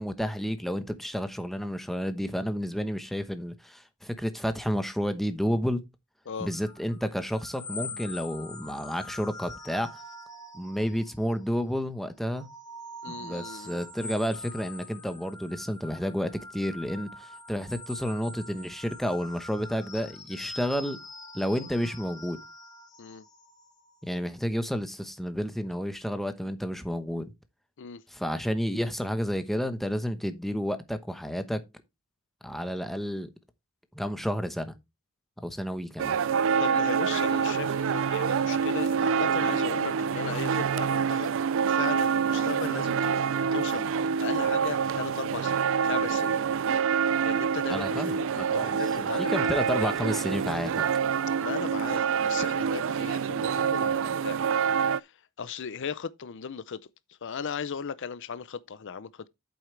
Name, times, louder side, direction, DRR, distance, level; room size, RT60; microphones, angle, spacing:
voice 1, 0.0-5.8 6.4-9.9 10.5-12.5 13.1-21.0 21.3-22.4 24.0-27.3 28.1-31.6 32.4-33.3 33.9-34.7 35.4-36.2 47.7-50.8, equal, ahead, 1.0 m, -31 dB
sound 1, 6.4-11.6 12.1-24.4, left 2 dB, 15° left, 1.9 m, -44 dB
voice 2, 13.0-13.8 23.0-23.3 27.8-28.0 36.6-41.3 41.7-46.4 47.2-49.9 51.4-56.8 57.1-59.3, left 6 dB, 60° left, 0.5 m, -37 dB
sound 2, 36.0-55.0, right 6 dB, 65° right, 0.4 m, -26 dB
8.6 x 7.8 x 3.2 m
head